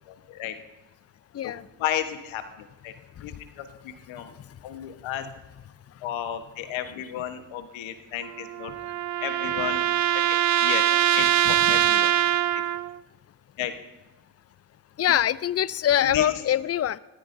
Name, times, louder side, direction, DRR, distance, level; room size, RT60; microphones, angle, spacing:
voice 1, 0.1-0.6 1.4-1.5 1.8-2.9 3.2-4.3 4.6-5.3 6.0-8.7 9.2-9.8 10.3-10.8 11.1-12.1 12.5-12.6 13.6-13.7 16.0-16.3, left 10 dB, 75° left, 8 dB, 1.3 m, -33 dB
voice 2, 1.3-1.7 3.2-3.3 15.0-17.0, left 11 dB, 35° left, 19 dB, 0.5 m, -24 dB
sound 1, 8.2-13.0, right 12 dB, 40° right, 0.4 m, -23 dB
20.5 x 13.5 x 2.6 m, 1.0 s
hypercardioid pair, 50°, 47 cm